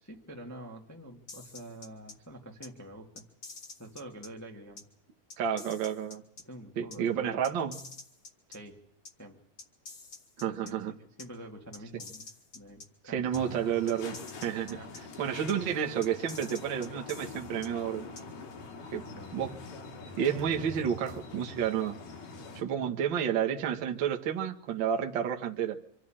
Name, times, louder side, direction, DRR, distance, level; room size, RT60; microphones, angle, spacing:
voice 1, 0.0-3.2 3.8-4.8 6.4-7.4 8.5-8.8 9.2-9.4 10.5-12.3 12.5-13.7 14.7-14.9 19.1-19.4, right 1 dB, 10° left, 0 dB, 0.9 m, -47 dB
sound 1, 1.3-2.1 2.6-2.7 3.2-4.3 4.8-4.9 5.3-6.4 6.9-7.0 7.4-8.6 9.0-9.1 9.6-10.7 11.2-11.3 11.7-12.9 13.3-13.4 13.9-15.0 15.5-15.6 16.0-17.7 18.2-18.3, left 4 dB, 35° left, 1.9 m, -47 dB
voice 2, 5.4-6.2 6.8-7.8 10.4-10.9 13.1-14.8 15.2-18.1 18.9-19.1 19.3-19.5 20.2-21.9 22.5-25.8, right 8 dB, 70° right, 2 dB, 1.1 m, -30 dB
sound 2, 13.3-22.6, left 3 dB, 70° left, 4.5 m, -44 dB
26.0 x 13.0 x 8.9 m, 0.72 s
omnidirectional pair, 4.5 m